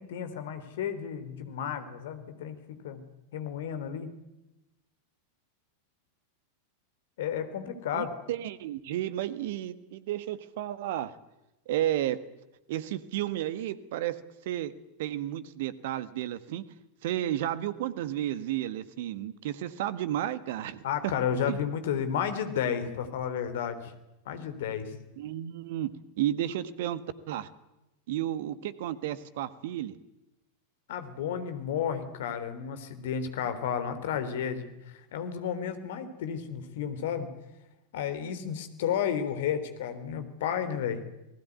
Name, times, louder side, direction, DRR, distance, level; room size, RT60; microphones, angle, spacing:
voice 1, 0.0-3.0 3.3-4.1 7.2-8.1 20.8-23.9 24.3-24.9 30.9-37.3 37.9-41.0, left 8 dB, 55° left, 10 dB, 3.7 m, -32 dB
voice 2, 7.9-11.1 11.7-12.2 12.7-16.6 17.0-21.1 21.5-21.6 25.2-25.9 26.2-27.0 27.3-27.5 28.1-30.0, right 12 dB, 55° right, 14 dB, 1.7 m, -32 dB
28.5 x 20.0 x 9.4 m, 0.95 s
figure-of-eight pair, 90°, 0 cm